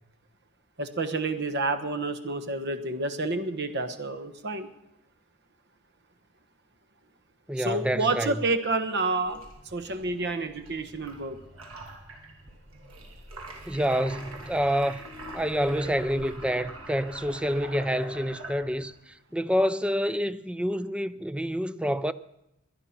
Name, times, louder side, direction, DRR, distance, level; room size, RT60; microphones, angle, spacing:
voice 1, 0.8-4.7 7.6-9.4 9.7-11.4, right 3 dB, 55° right, 1.2 m, -29 dB
voice 2, 7.5-8.4 13.7-15.0 15.3-22.1, equal, 5° right, 0.5 m, -28 dB
sound 1, 9.2-19.0, right 1 dB, 85° right, 2.9 m, -44 dB
21.5 x 10.5 x 5.9 m
head